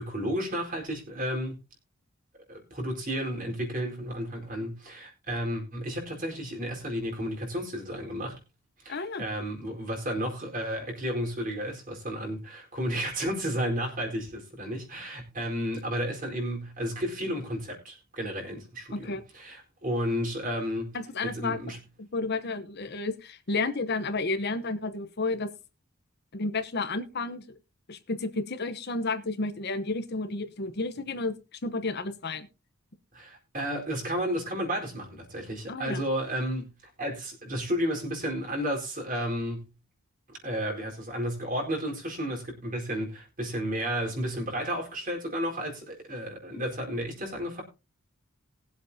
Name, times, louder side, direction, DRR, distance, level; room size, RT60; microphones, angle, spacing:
voice 1, 0.0-1.6 2.5-8.4 8.8-21.0 21.2-21.8 33.1-39.7 40.4-47.6, equal, 40° right, 4.3 m, -32 dB
voice 2, 8.9-9.2 18.9-19.2 20.9-21.6 22.0-25.5 26.3-27.6 27.9-32.5 35.7-36.0, left 3 dB, 50° left, 1.0 m, -31 dB
20.5 x 7.8 x 2.8 m
head